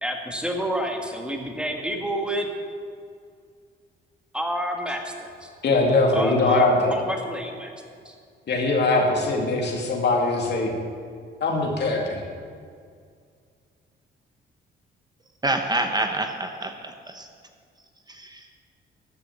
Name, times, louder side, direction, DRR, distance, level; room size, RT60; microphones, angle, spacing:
voice 1, 0.0-2.5 4.3-5.5 6.1-7.7 8.1-8.2, equal, 5° right, 2 dB, 1.7 m, -29 dB
voice 2, 5.6-6.9 8.5-10.7 11.4-12.2, left 2 dB, 60° left, 0 dB, 2.6 m, -21 dB
voice 3, 15.4-17.3 18.1-18.5, right 2 dB, 20° right, 5 dB, 1.0 m, -27 dB
13.5 x 7.1 x 7.5 m, 2.2 s
cardioid pair, 90°, 20 cm